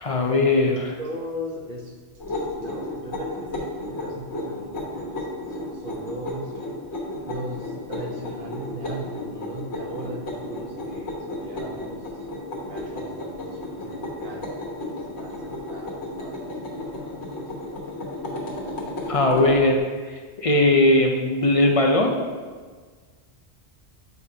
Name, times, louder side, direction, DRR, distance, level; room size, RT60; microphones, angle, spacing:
voice 1, 0.0-1.0 19.1-19.8 20.1-22.2, left 2 dB, 45° left, 2 dB, 0.5 m, -19 dB
voice 2, 1.0-2.0 2.3-6.6 7.2-12.0 12.5-17.5, equal, 55° right, -1 dB, 1.2 m, -38 dB
sound 1, 2.2-19.6, left 1 dB, 85° left, 1.7 m, -33 dB
8.1 x 4.8 x 2.8 m, 1.5 s
omnidirectional pair, 1.1 m